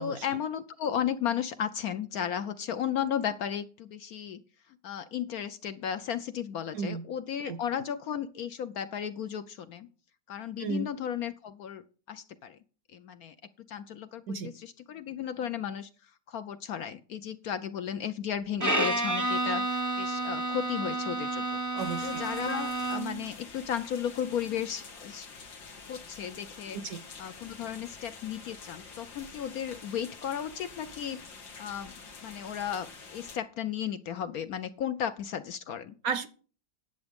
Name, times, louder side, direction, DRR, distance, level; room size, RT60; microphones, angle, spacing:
voice 1, 0.0-4.4 4.8-9.9 10.3-12.6 12.9-13.3 13.7-15.9 16.3-21.6 22.0-25.3 25.9-26.8 27.2-31.2 31.6-31.9 32.2-35.9, left 9 dB, 65° left, 1.0 m, -34 dB
Bowed string instrument, 18.6-23.3, right 1 dB, 15° right, 0.7 m, -30 dB
voice 2, 21.7-22.3 26.7-27.0 36.0-36.3, right 5 dB, 65° right, 0.9 m, -33 dB
sound 1, 21.8-33.4, left 4 dB, 85° left, 2.6 m, -47 dB
10.5 x 8.1 x 5.2 m
omnidirectional pair, 2.0 m